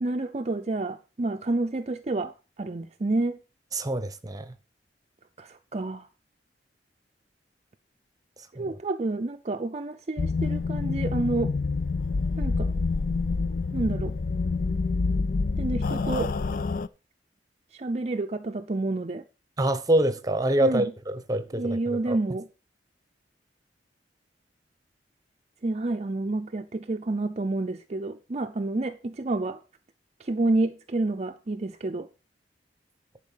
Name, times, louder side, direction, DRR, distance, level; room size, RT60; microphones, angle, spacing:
voice 1, 0.0-3.4 5.4-6.1 8.5-11.6 12.4-12.7 13.7-14.2 15.6-16.4 17.7-19.2 20.6-20.9 21.5-22.5 25.6-29.6 30.2-32.1, right 2 dB, 40° right, 0.5 m, -29 dB
voice 2, 3.7-4.5 8.6-8.7 19.6-22.2, right 1 dB, 20° right, 0.9 m, -26 dB
sound 1, 10.2-16.9, left 4 dB, 50° left, 0.5 m, -27 dB
10.5 x 4.8 x 6.5 m
head